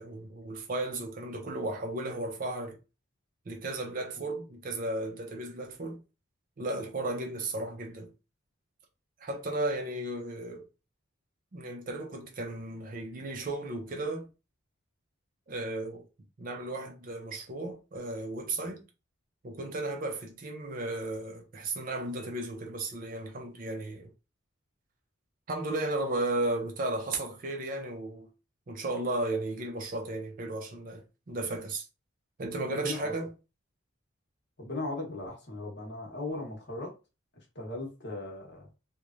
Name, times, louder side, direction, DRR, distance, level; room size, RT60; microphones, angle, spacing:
voice 1, 0.0-2.8 3.5-6.0 6.6-8.1 9.2-10.7 11.5-14.3 15.5-16.1 16.4-18.8 19.4-24.1 25.5-28.3 28.7-31.9 32.4-33.3, right 2 dB, 40° right, 0.5 m, -34 dB
voice 2, 32.7-33.1 34.6-36.9 37.4-38.7, left 2 dB, 50° left, 0.9 m, -38 dB
3.0 x 2.1 x 2.4 m
head